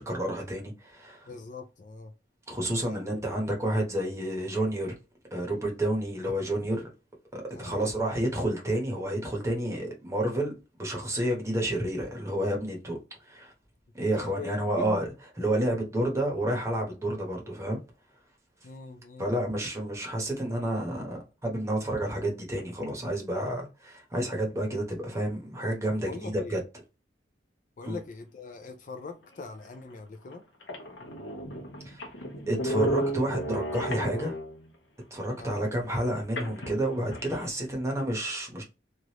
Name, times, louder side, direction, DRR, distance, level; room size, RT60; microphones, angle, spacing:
voice 1, 0.0-1.3 2.5-4.9 5.3-6.8 7.3-10.5 10.8-13.5 13.9-15.1 15.4-17.8 19.2-26.6 27.8-28.0 31.8-32.0 32.5-34.3 35.1-38.6, right 1 dB, 15° right, 0.9 m, -30 dB
voice 2, 1.3-2.1 2.8-3.0 7.5-7.9 14.1-15.0 18.6-19.3 26.1-26.6 27.8-30.4 35.4-35.7, left 3 dB, 45° left, 0.4 m, -42 dB
sound 1, 29.7-29.8 30.3-30.4 30.6-34.7 36.4-37.4, equal, 75° left, 0.8 m, -33 dB
3.2 x 2.4 x 2.8 m
head